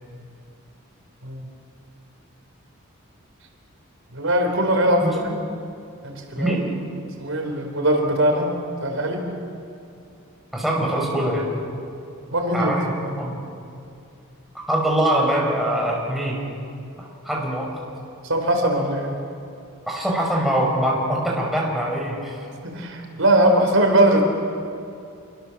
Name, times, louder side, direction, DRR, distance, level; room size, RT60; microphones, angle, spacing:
voice 1, 4.1-5.4 6.0-6.5 7.2-8.5 8.8-9.2 12.3-13.2 18.2-19.2 22.6-24.2, right 1 dB, 75° right, 3 dB, 4.2 m, -21 dB
voice 2, 10.5-11.5 12.5-13.4 14.7-16.5 17.0-17.7 19.9-22.4, right 1 dB, ahead, -2 dB, 4.9 m, -23 dB
27.0 x 24.0 x 7.3 m, 2.6 s
head